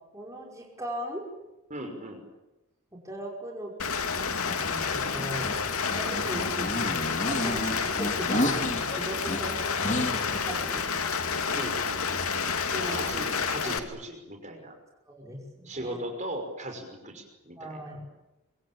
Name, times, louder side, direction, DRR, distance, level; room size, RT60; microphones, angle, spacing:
voice 1, 0.1-1.2 2.9-4.0 4.6-5.6 5.9-7.0 7.2-9.7 10.4-10.8 12.5-13.7 15.1-16.0 17.6-18.0, right 1 dB, 15° right, -1 dB, 5.4 m, -38 dB
voice 2, 1.7-2.2 11.5-12.4 12.8-14.7 15.6-18.0, right 1 dB, 30° right, 4 dB, 5.7 m, -38 dB
Rain, 3.8-13.8, left 5 dB, 75° left, 2.6 m, -29 dB
sound 1, 4.3-10.4, left 1 dB, 35° left, 3.3 m, -32 dB
25.5 x 25.5 x 8.9 m, 0.99 s
head